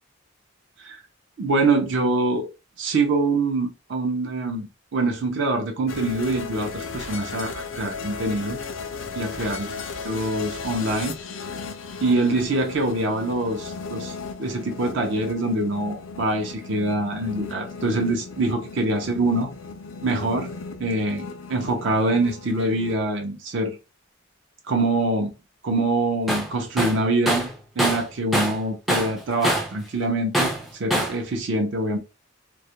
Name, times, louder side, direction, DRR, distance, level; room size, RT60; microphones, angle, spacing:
voice 1, 1.4-2.5 2.8-8.6 9.2-9.7 10.0-11.1 12.0-14.1 14.4-19.5 20.0-20.5 20.8-23.8 24.7-25.3 25.6-27.5 27.8-32.0, right 2 dB, 60° right, 0.5 m, -24 dB
sound 1, 5.9-23.0, left 4 dB, 70° left, 0.4 m, -36 dB
Tools, 26.3-26.5 26.8-28.6 28.9-29.8 30.3-31.2, equal, ahead, 0.4 m, -24 dB
2.3 x 2.1 x 2.8 m
head